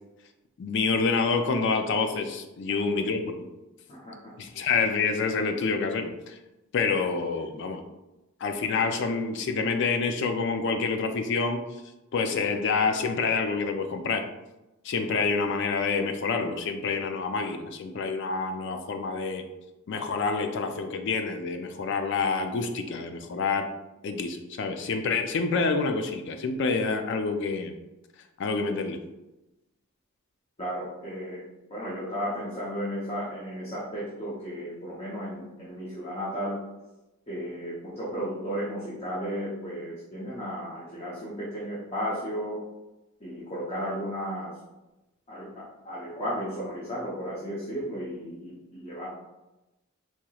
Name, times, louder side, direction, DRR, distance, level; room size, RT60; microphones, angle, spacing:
voice 1, 0.6-3.4 4.4-6.4 6.7-7.8 8.4-11.6 12.1-14.2 14.8-19.4 19.9-23.7 24.0-27.7 28.4-29.0, left 4 dB, 55° left, 6 dB, 0.3 m, -27 dB
voice 2, 3.9-4.3 30.6-31.4 31.7-36.6 37.3-42.6 43.2-44.6 45.3-49.1, equal, 30° left, -7 dB, 0.7 m, -34 dB
4.4 x 2.9 x 2.3 m, 0.99 s
head